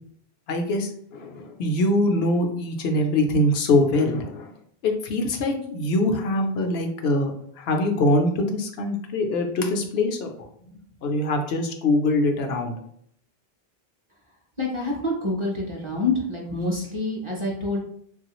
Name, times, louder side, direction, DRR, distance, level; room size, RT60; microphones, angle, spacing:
voice 1, 0.5-4.5 4.8-7.3 7.6-10.5 11.0-12.7, left 1 dB, 80° left, 4 dB, 0.8 m, -23 dB
voice 2, 14.6-17.8, left 2 dB, 35° right, -2 dB, 0.5 m, -27 dB
3.0 x 2.3 x 2.9 m, 0.68 s
omnidirectional pair, 1.0 m